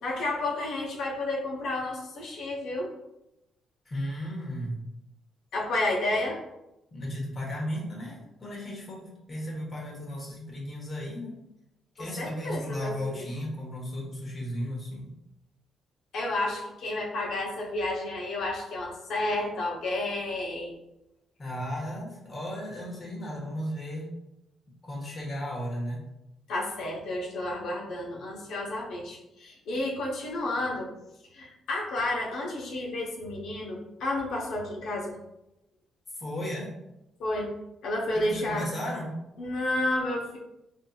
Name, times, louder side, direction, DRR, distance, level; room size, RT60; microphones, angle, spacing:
voice 1, 0.0-2.9 5.5-6.4 12.0-13.3 16.1-20.8 26.5-30.9 31.3-35.2 37.2-37.5 37.8-38.7 39.4-40.4, left 2 dB, 75° left, -2 dB, 0.9 m, -31 dB
voice 2, 3.8-4.8 6.9-11.4 11.9-15.1 21.4-24.1 24.8-26.0 36.2-36.7 38.1-39.1, equal, 35° left, -2 dB, 1.3 m, -35 dB
4.4 x 2.7 x 2.3 m, 0.88 s
cardioid pair, 90°, 0 cm